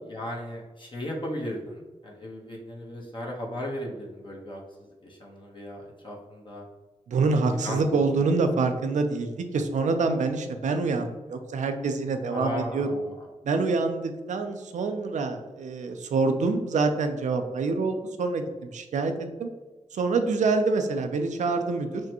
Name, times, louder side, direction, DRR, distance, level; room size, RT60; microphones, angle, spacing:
voice 1, 0.1-6.6 7.6-8.0 12.3-13.2, left 1 dB, 40° left, -3 dB, 1.0 m, -36 dB
voice 2, 7.1-12.9 13.4-19.1 19.4-19.5 19.9-22.0, right 4 dB, 80° right, 7 dB, 0.5 m, -26 dB
6.0 x 2.2 x 2.9 m, 1.2 s
cardioid pair, 55°, 12 cm